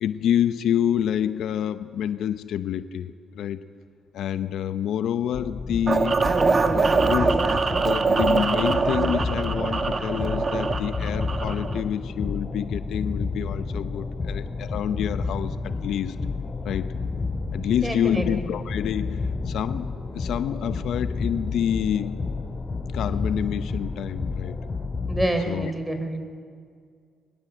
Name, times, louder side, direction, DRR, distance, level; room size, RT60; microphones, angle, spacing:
voice 1, 0.0-3.6 4.1-6.2 6.7-7.4 7.8-16.2 16.6-16.9 17.5-19.9 20.1-22.2 22.9-24.6 25.5-25.7, left 9 dB, 75° left, 12 dB, 0.8 m, -27 dB
sound 1, 5.3-25.3, left 4 dB, 30° left, 2.5 m, -30 dB
sound 2, 5.9-11.8, right 4 dB, 35° right, 1.4 m, -23 dB
voice 2, 17.7-18.5 25.1-26.2, right 1 dB, 10° right, 6 dB, 3.5 m, -27 dB
22.0 x 21.5 x 8.0 m, 2.1 s
cardioid pair, 90°, 0 cm